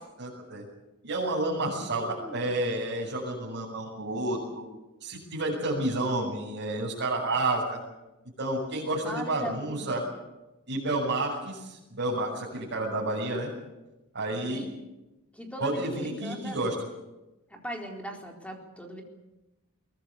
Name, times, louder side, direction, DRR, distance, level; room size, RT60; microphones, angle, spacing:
voice 1, 0.2-0.6 1.0-4.7 5.0-7.8 8.4-10.0 10.7-13.5 14.1-14.6 15.6-16.7, right 2 dB, 55° right, -7 dB, 7.0 m, -30 dB
voice 2, 1.6-2.5 9.0-9.9 14.4-14.7 15.3-16.6 17.5-19.0, equal, 5° left, 1 dB, 4.2 m, -39 dB
22.5 x 19.5 x 8.3 m, 1.0 s
head